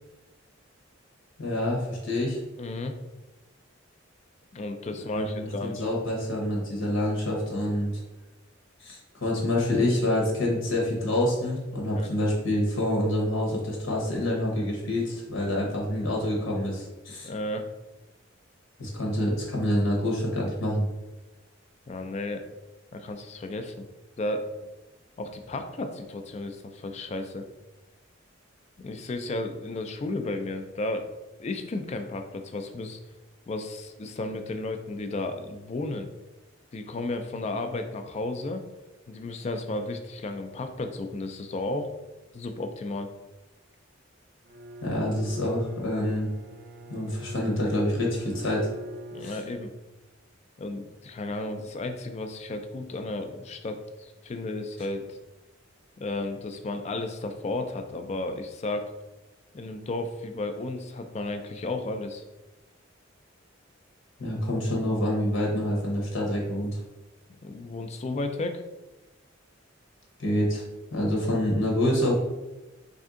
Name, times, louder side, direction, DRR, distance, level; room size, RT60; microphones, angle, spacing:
voice 1, 1.4-2.4 5.1-8.0 8.8-17.3 18.8-20.9 44.8-46.3 46.9-48.7 49.2-49.4 64.2-66.8 70.2-70.6 70.9-72.1, left 1 dB, 75° left, -1 dB, 0.9 m, -27 dB
voice 2, 2.6-3.0 4.5-5.8 11.9-12.1 17.2-17.7 21.9-22.4 22.9-23.8 24.2-24.7 25.2-27.4 28.8-31.1 31.4-33.0 33.5-36.1 36.7-38.6 39.1-41.9 42.3-43.1 49.1-49.7 50.6-55.2 56.0-58.9 59.5-62.2 67.4-68.6, left 2 dB, 35° left, 7 dB, 0.3 m, -33 dB
Bowed string instrument, 44.4-49.9, right 1 dB, 50° right, 0.4 m, -42 dB
3.4 x 2.6 x 3.6 m, 1.1 s
head